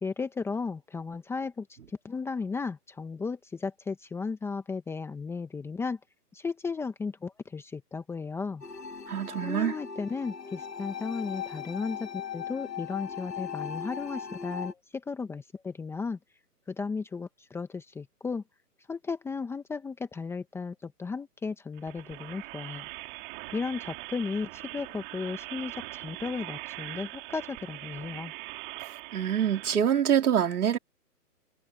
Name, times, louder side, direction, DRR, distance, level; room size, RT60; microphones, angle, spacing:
voice 1, 0.0-6.0 6.3-8.6 9.4-16.2 16.7-18.4 18.9-22.9 23.5-28.3, left 4 dB, 5° left, 1.3 m, -35 dB
sound 1, 8.6-14.7, left 7 dB, 90° left, 2.2 m, -38 dB
voice 2, 9.1-9.7 28.8-30.8, right 9 dB, 65° right, 3.8 m, -26 dB
sound 2, 21.8-29.7, right 25 dB, 30° right, 3.9 m, -42 dB
hypercardioid pair, 145°, 48 cm